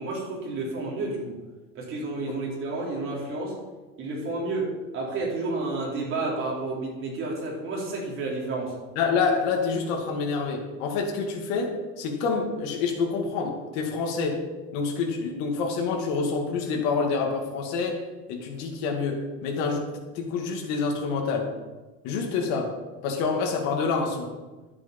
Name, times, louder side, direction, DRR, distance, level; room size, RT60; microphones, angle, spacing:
voice 1, 0.0-1.4 1.7-3.6 4.0-8.7, right 2 dB, 40° right, -3 dB, 4.2 m, -31 dB
voice 2, 9.0-14.5 14.7-18.0 18.3-21.5 22.0-24.3, left 4 dB, 70° left, 1 dB, 2.2 m, -27 dB
11.5 x 8.4 x 5.3 m, 1.2 s
cardioid pair, 150°, 32 cm